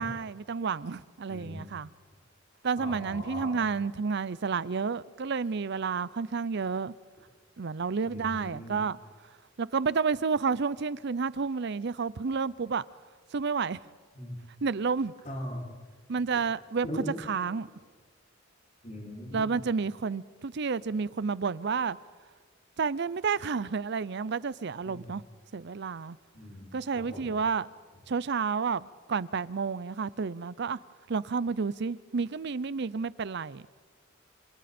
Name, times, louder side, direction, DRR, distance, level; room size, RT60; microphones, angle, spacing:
voice 1, 0.0-1.9 2.6-6.9 7.6-9.0 9.6-12.8 13.3-13.8 14.6-15.1 16.1-17.7 19.3-22.0 22.8-25.2 25.5-26.2 26.7-27.7 28.1-30.8 31.1-33.6, right 5 dB, 60° right, 0.6 m, -30 dB
voice 2, 1.3-1.7 2.8-3.6 8.0-8.8 14.1-14.4 15.2-15.7 16.8-17.2 18.8-19.6 24.8-25.1 26.3-27.3, left 1 dB, 40° left, 6.3 m, -40 dB
28.0 x 27.5 x 4.4 m
head